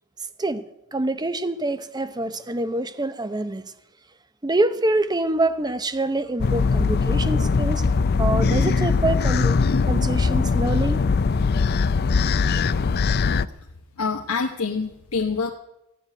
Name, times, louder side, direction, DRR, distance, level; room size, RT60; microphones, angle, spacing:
voice 1, 0.9-3.6 4.4-7.8 8.2-9.6 9.9-11.0, right 2 dB, 20° right, 0.7 m, -25 dB
sound 1, 6.4-13.5, left 4 dB, 45° left, 0.4 m, -21 dB
voice 2, 14.0-15.5, left 4 dB, 80° left, 1.0 m, -26 dB
15.0 x 7.9 x 9.9 m
head